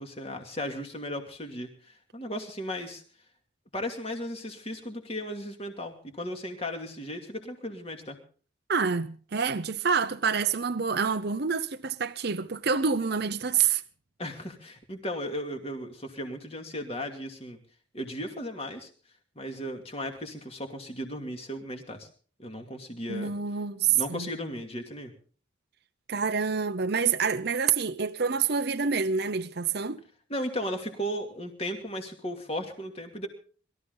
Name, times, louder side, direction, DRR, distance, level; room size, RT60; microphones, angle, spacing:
voice 1, 0.0-3.0 3.7-8.2 14.2-17.6 17.9-18.9 19.4-22.1 22.4-23.3 23.9-25.1 30.3-33.3, equal, 30° left, 2.6 m, -36 dB
voice 2, 8.7-13.8 23.1-24.3 26.1-30.0, right 6 dB, 50° right, 0.7 m, -27 dB
21.5 x 14.0 x 4.0 m
head